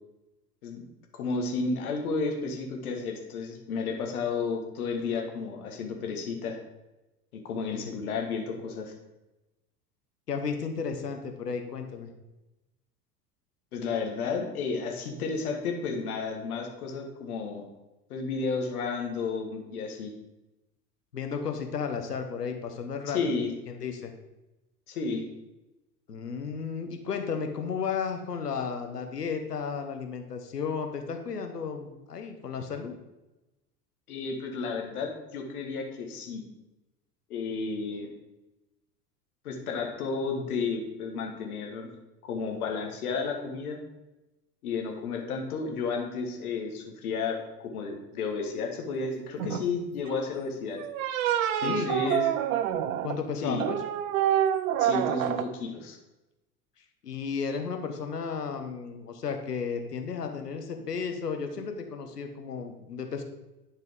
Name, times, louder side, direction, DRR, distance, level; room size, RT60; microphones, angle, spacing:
voice 1, 1.1-6.6 7.3-8.9 13.7-17.6 18.1-20.1 23.1-23.5 24.9-25.3 34.1-36.4 37.3-38.1 39.4-41.9 42.2-43.8 44.6-47.4 47.7-50.8 51.6-52.3 53.4-53.7 54.8-56.0, left 4 dB, 65° left, 2 dB, 1.6 m, -32 dB
voice 2, 10.3-12.1 21.1-23.2 23.7-24.1 26.1-32.9 51.5-52.1 53.0-53.8 57.0-63.2, left 6 dB, 85° left, 5 dB, 1.0 m, -33 dB
sound 1, 49.4-49.7 50.7-53.2 53.6-55.4, right 10 dB, 60° right, 0.7 m, -27 dB
11.0 x 4.6 x 3.7 m, 1.0 s
figure-of-eight pair, 80°, 46 cm